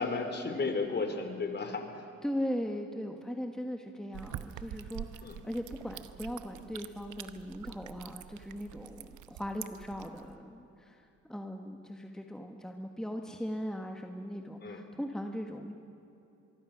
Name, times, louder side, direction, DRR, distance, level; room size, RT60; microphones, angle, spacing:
voice 1, 0.0-2.0 5.2-5.4 14.6-14.8, left 4 dB, 35° left, 6 dB, 3.1 m, -33 dB
voice 2, 2.2-15.7, equal, ahead, 4 dB, 1.4 m, -39 dB
sound 1, 4.1-10.4, right 11 dB, 80° right, 1.0 m, -46 dB
24.5 x 22.5 x 6.3 m, 2.9 s
cardioid pair, 90°, 30 cm